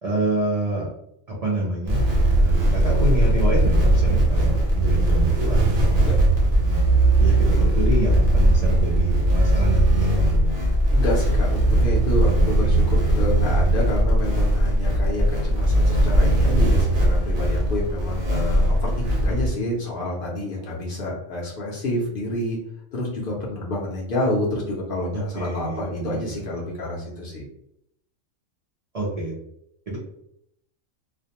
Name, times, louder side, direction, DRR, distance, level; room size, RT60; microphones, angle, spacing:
voice 1, 0.0-0.9 1.3-2.0 2.3-6.0 6.6-6.9 7.2-10.4 12.2-12.8 25.1-26.4 28.9-29.3 29.9-30.0, right 1 dB, 65° right, -4 dB, 0.3 m, -27 dB
sound 1, 1.9-19.5, right 1 dB, 50° right, 0.8 m, -19 dB
voice 2, 10.9-22.6 22.9-27.5, left 1 dB, 55° left, -3 dB, 0.7 m, -28 dB
2.4 x 2.1 x 2.8 m, 0.76 s
omnidirectional pair, 1.3 m